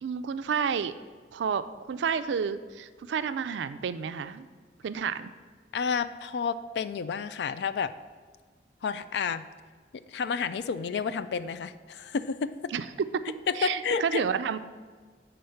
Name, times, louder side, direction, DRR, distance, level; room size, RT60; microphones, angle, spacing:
voice 1, 0.0-1.0 1.3-4.5 4.8-5.3 12.7-12.8 13.3-14.7, right 6 dB, 80° right, 12 dB, 0.3 m, -30 dB
voice 2, 5.7-7.9 8.8-9.5 10.1-12.5 13.5-14.2, left 5 dB, 65° left, 13 dB, 0.3 m, -30 dB
7.8 x 3.8 x 5.6 m, 1.5 s
head